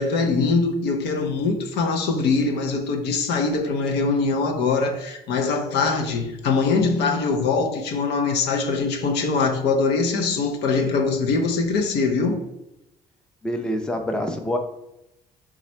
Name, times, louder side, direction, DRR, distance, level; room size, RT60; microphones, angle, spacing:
voice 1, 0.0-12.4, left 4 dB, 80° left, 0.7 m, -22 dB
voice 2, 13.4-14.6, equal, 5° left, 0.5 m, -26 dB
4.0 x 2.4 x 4.2 m
cardioid pair, 110°, 17 cm